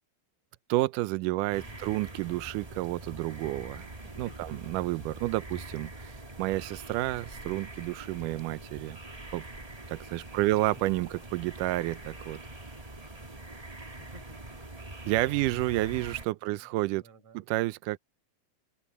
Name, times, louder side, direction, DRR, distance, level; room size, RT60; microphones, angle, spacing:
voice 1, 0.7-9.0 9.3-9.5 9.9-12.4 15.1-17.0 17.3-18.0, right 18 dB, 85° right, 1.8 m, -30 dB
sound 1, 1.5-16.2, right 1 dB, 25° right, 0.8 m, -44 dB
voice 2, 1.5-1.9 4.3-4.6 10.3-10.6 14.0-14.7 16.4-16.7 17.0-17.4, right 2 dB, 40° right, 7.0 m, -54 dB
omnidirectional pair, 4.4 m